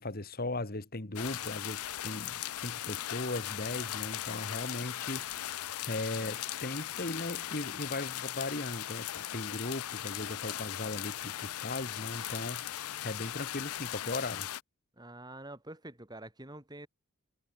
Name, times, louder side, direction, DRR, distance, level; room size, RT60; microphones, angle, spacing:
voice 1, 0.0-14.5, left 2 dB, 40° left, 1.8 m, -38 dB
Rain sheet roof, 1.2-14.6, left 13 dB, 75° left, 0.5 m, -38 dB
voice 2, 15.0-16.9, right 1 dB, 20° right, 3.3 m, -46 dB
head